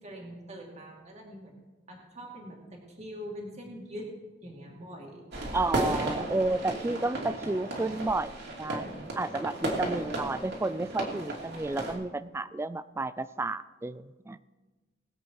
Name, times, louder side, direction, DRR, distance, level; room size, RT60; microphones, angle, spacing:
voice 1, 0.0-1.6 1.9-4.1 4.4-5.2, equal, 35° right, -2 dB, 2.4 m, -43 dB
sound 1, 5.3-11.9, right 1 dB, 60° right, 2.8 m, -34 dB
voice 2, 5.5-8.3 8.6-14.4, right 2 dB, 15° right, 16 dB, 0.3 m, -31 dB
20.5 x 8.1 x 4.7 m, 1.2 s
head